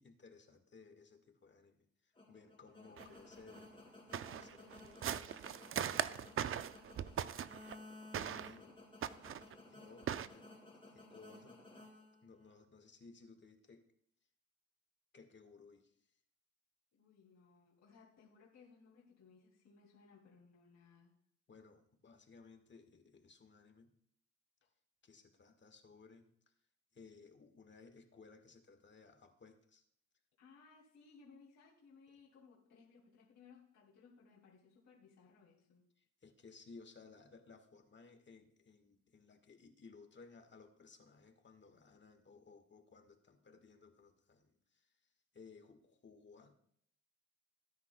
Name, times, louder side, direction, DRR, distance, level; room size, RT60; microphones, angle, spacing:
voice 1, 0.0-5.6 6.2-6.6 8.4-8.7 9.5-10.5 10.9-11.6 12.2-13.9 15.1-16.1 21.5-23.9 25.0-26.3 26.9-29.8 36.0-46.5, left 4 dB, 40° left, 6 dB, 1.6 m, -60 dB
sound 1, 2.2-12.6, left 2 dB, 20° left, 2.6 m, -57 dB
sound 2, 3.0-3.1 3.6-3.7 4.1-7.7 8.1-8.6 9.0-9.5 10.0-10.3, right 9 dB, 45° right, 0.5 m, -39 dB
voice 2, 8.4-8.8 16.9-21.1 30.4-35.8, left 5 dB, 65° left, -5 dB, 2.8 m, -63 dB
18.0 x 9.6 x 2.3 m, 0.67 s
cardioid pair, 90°, 30 cm